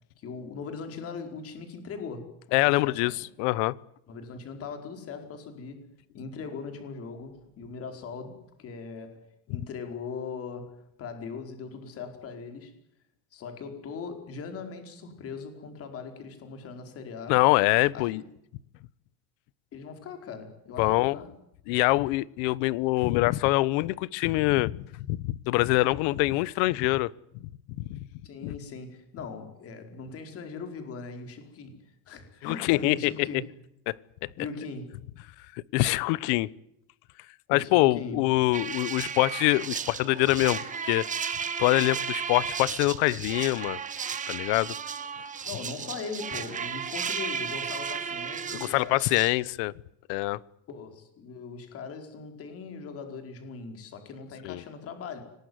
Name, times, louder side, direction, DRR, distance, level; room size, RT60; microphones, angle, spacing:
voice 1, 0.2-3.1 4.1-5.9 6.1-12.7 13.3-17.4 17.9-18.2 19.7-21.3 28.2-33.4 34.4-35.0 37.5-38.4 45.4-49.0 50.7-55.2, left 5 dB, 35° left, 6 dB, 4.9 m, -40 dB
voice 2, 2.5-3.8 17.3-18.2 20.8-21.2 21.7-27.1 27.4-27.5 27.9-28.0 28.4-28.5 32.4-33.3 33.9-34.0 35.7-36.5 37.5-41.1 41.6-43.8 44.3-44.7 48.5-49.7 50.1-50.4 54.4-54.6, left 20 dB, 85° left, 21 dB, 1.1 m, -24 dB
sound 1, 38.5-49.3, right 7 dB, 20° right, 1.6 m, -34 dB
25.5 x 19.0 x 9.6 m, 0.77 s
cardioid pair, 180°, 39 cm